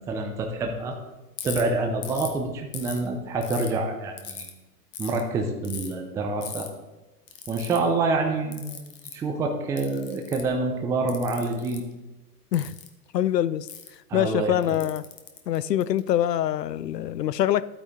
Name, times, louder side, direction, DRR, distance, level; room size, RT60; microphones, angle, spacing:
voice 1, 0.1-1.0 1.4-4.5 5.0-6.7 7.5-11.8 14.1-14.8, right 3 dB, 5° right, 3 dB, 0.5 m, -27 dB
Ratchet pawl, 1.4-1.6 2.0-2.3 2.7-3.7 4.2-4.5 4.9-5.2 5.6-5.9 6.4-6.7 7.3-7.8 8.5-9.2 9.8-10.5 11.1-11.8 12.5-12.9 13.7-13.9 14.6-16.1, left 8 dB, 25° left, 1.1 m, -38 dB
voice 2, 13.1-13.7 14.1-15.0 15.5-17.7, left 11 dB, 80° left, 18 dB, 0.6 m, -24 dB
12.0 x 8.8 x 3.2 m, 1.1 s
hypercardioid pair, 120°, 48 cm